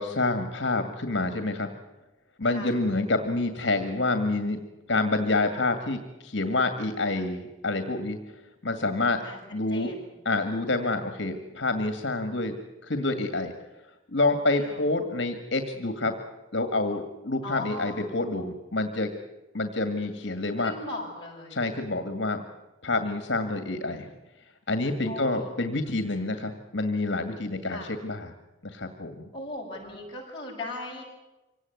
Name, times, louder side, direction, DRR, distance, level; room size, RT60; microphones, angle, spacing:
voice 1, 0.0-1.7 2.4-4.6 4.9-8.2 8.6-9.2 9.5-9.9 10.3-12.6 12.8-13.5 14.1-16.1 16.5-19.1 19.5-20.7 21.5-22.4 22.8-24.1 24.7-28.3 28.6-29.3, left 2 dB, 70° left, 8 dB, 2.0 m, -27 dB
voice 2, 2.4-2.7 9.2-9.4 9.7-10.0 14.5-14.8 17.4-18.0 20.6-21.6 25.0-25.5 27.7-27.9 29.3-31.0, left 2 dB, 25° left, -3 dB, 7.6 m, -38 dB
25.5 x 18.0 x 9.6 m, 1.0 s
head